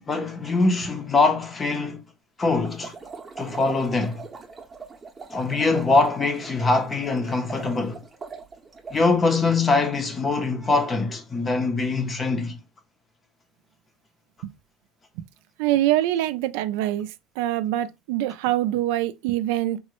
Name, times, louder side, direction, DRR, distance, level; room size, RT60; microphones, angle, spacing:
voice 1, 0.1-2.0 2.4-2.9 3.4-4.3 5.3-8.0 8.9-12.6, left 3 dB, 20° left, 0.5 m, -23 dB
sound 1, 2.6-9.1, right 5 dB, 20° right, 0.7 m, -41 dB
voice 2, 15.6-19.8, right 14 dB, 85° right, 0.3 m, -24 dB
3.6 x 2.1 x 2.9 m
cardioid pair, 135°, 0 cm